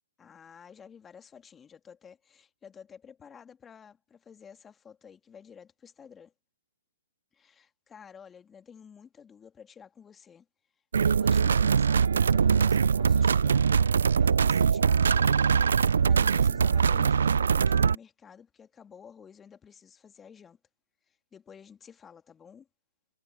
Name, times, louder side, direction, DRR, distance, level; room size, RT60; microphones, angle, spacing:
voice 1, 0.2-6.3 7.3-10.5 11.0-13.6 14.1-20.6 21.1-22.7, left 7 dB, 15° left, 2.1 m, -52 dB
sound 1, 10.9-18.0, right 6 dB, 70° right, 0.4 m, -22 dB
hypercardioid pair, 125°, 0 cm